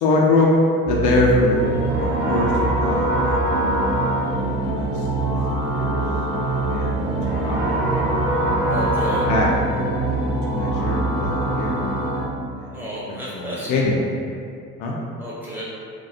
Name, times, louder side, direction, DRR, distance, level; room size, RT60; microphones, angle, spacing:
voice 1, 0.0-1.6 1.9-2.5 2.8-3.3 4.2-4.5 4.7-5.1 5.7-6.0 6.5-8.3 9.3-9.5 10.5-11.8 12.5-14.0 14.8-14.9, left 2 dB, 60° left, -2 dB, 0.5 m, -23 dB
sound 1, 0.8-12.8, right 4 dB, 40° right, 0.7 m, -27 dB
sound 2, 1.6-12.2, equal, 85° right, 0.6 m, -24 dB
voice 2, 8.7-9.3 12.7-13.7 15.2-15.6, right 1 dB, 5° right, -8 dB, 0.7 m, -32 dB
2.3 x 2.1 x 2.6 m, 2.4 s
figure-of-eight pair, 60°, 47 cm